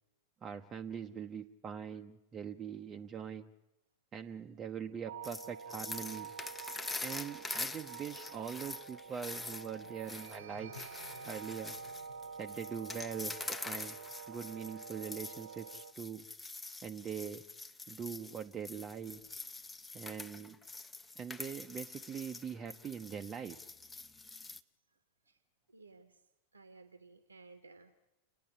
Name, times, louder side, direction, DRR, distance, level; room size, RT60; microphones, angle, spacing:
voice 1, 0.4-3.5 4.1-6.3 7.0-10.7 11.2-11.8 12.4-14.0 14.3-16.3 16.8-17.4 17.9-19.2 19.9-20.6 21.2-23.6, right 7 dB, 25° right, 3 dB, 0.7 m, -42 dB
sound 1, 5.1-15.9, right 6 dB, 65° right, 0.8 m, -48 dB
sound 2, 5.2-24.6, left 3 dB, 10° left, 0.8 m, -45 dB
sound 3, 10.3-14.8, left 3 dB, 75° left, 1.3 m, -59 dB
voice 2, 25.7-26.2 26.5-28.1, right 3 dB, 80° right, 9 dB, 1.1 m, -57 dB
29.5 x 10.0 x 9.9 m, 1.0 s
figure-of-eight pair, 90°, 0 cm